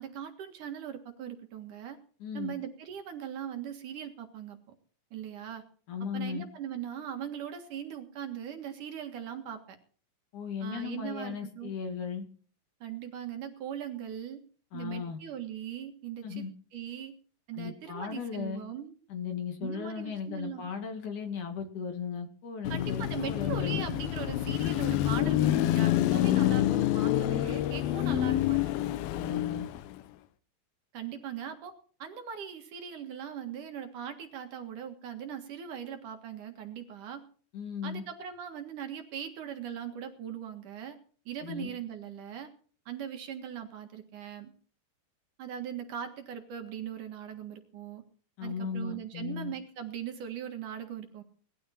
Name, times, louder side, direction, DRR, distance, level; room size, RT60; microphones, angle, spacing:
voice 1, 0.0-2.0 2.3-4.7 5.1-5.6 6.1-9.8 10.6-11.7 12.8-14.4 14.7-16.4 16.7-17.1 17.5-18.9 19.6-20.7 22.7-28.7 30.9-31.7 32.0-37.2 37.8-41.0 41.3-42.5 42.9-44.5 45.4-48.0 48.4-51.2, right 9 dB, 60° right, 5 dB, 3.1 m, -40 dB
voice 2, 2.2-2.5 5.9-6.5 10.3-12.2 14.7-15.2 16.2-16.5 17.5-18.6 19.1-23.8 26.2-26.6 29.1-29.7 37.5-38.0 41.4-41.7 48.4-49.5, left 6 dB, 60° left, 5 dB, 3.4 m, -36 dB
Car passing by / Traffic noise roadway noise / Engine, 22.6-30.0, left 14 dB, 80° left, 2.6 m, -27 dB
19.5 x 12.5 x 4.4 m, 0.43 s
omnidirectional pair, 4.2 m